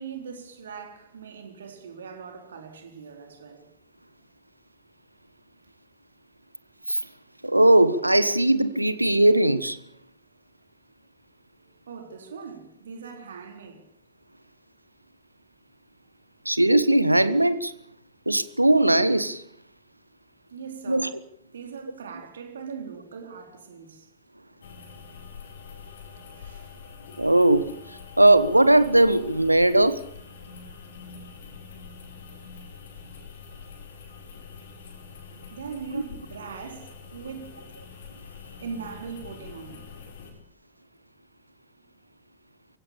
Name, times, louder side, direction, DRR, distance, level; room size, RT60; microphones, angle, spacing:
voice 1, 0.0-3.7 11.9-13.9 20.5-21.2 21.5-24.1 26.1-26.8 34.3-34.4 35.5-37.7 38.5-39.9 41.8-41.9, right 6 dB, 65° right, 4.0 m, -41 dB
voice 2, 7.4-9.8 16.4-17.7 18.3-19.4 20.9-21.1 27.2-27.7 28.2-30.0 35.9-36.0, right 1 dB, 85° right, 1.2 m, -19 dB
sound 1, 24.6-40.3, left 5 dB, 65° left, 4.7 m, -45 dB
23.5 x 16.5 x 8.6 m
figure-of-eight pair, 90°, 0 cm